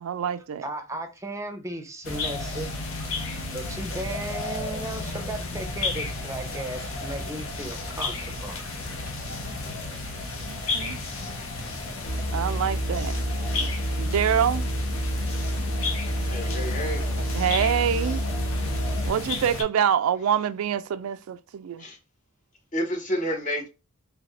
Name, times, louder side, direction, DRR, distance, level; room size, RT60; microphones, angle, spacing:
voice 1, 0.0-0.6 10.5-11.0 12.3-13.2 13.5-13.7 14.0-14.6 17.3-18.3 19.1-21.8, right 8 dB, 85° right, 0.3 m, -26 dB
voice 2, 0.6-2.7 3.0-8.7 12.1-12.2, right 1 dB, 15° right, 0.6 m, -36 dB
sound 1, 2.0-19.6, left 3 dB, 70° left, 0.8 m, -33 dB
sound 2, 12.0-19.1, equal, 55° left, 1.3 m, -28 dB
voice 3, 16.2-17.0 18.7-18.8 21.8-22.0 22.7-23.7, equal, 40° left, 1.0 m, -30 dB
4.1 x 2.8 x 3.1 m
head